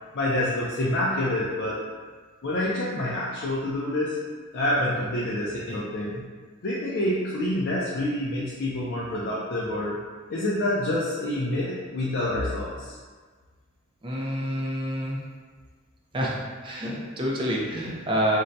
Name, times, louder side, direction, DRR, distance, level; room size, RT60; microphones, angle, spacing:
voice 1, 0.1-1.8 2.4-4.2 4.5-6.2 6.6-10.0 10.3-11.6 11.9-12.9, left 1 dB, 55° left, -7 dB, 0.4 m, -27 dB
voice 2, 14.0-15.2 16.1-18.4, equal, 25° right, -4 dB, 0.5 m, -28 dB
2.6 x 2.2 x 3.9 m, 1.5 s
head